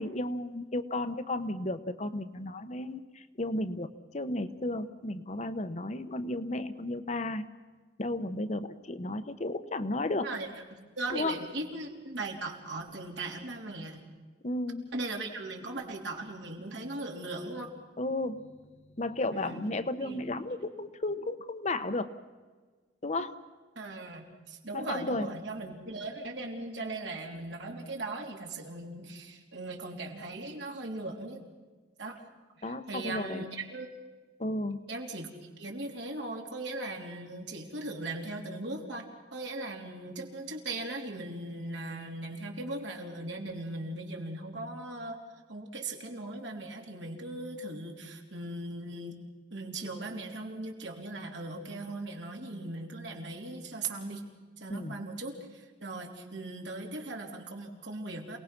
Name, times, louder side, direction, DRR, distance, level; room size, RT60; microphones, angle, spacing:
voice 1, 0.0-3.9 4.1-7.5 8.0-10.3 11.1-11.4 14.4-14.9 18.0-18.6 19.0-22.1 23.0-23.3 24.7-25.3 32.6-33.4 34.4-34.8 54.7-55.0, left 2 dB, 35° left, 10 dB, 0.9 m, -33 dB
voice 2, 10.2-14.0 14.9-17.7 19.3-19.6 20.0-20.3 23.7-31.4 32.0-32.2 32.6-33.9 34.9-45.2 45.5-49.2 49.5-54.2 54.6-58.4, right 2 dB, 70° right, 1 dB, 3.4 m, -39 dB
27.5 x 19.0 x 6.0 m, 1.4 s
head